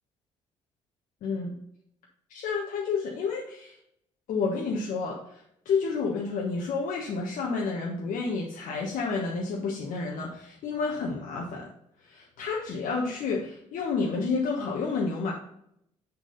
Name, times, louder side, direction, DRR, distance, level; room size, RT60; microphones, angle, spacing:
voice 1, 1.2-1.5 2.3-3.8 4.3-11.7 12.0-15.3, left 4 dB, 60° left, -1 dB, 1.4 m, -30 dB
7.5 x 6.3 x 4.0 m, 0.74 s
hypercardioid pair, 50°, 15 cm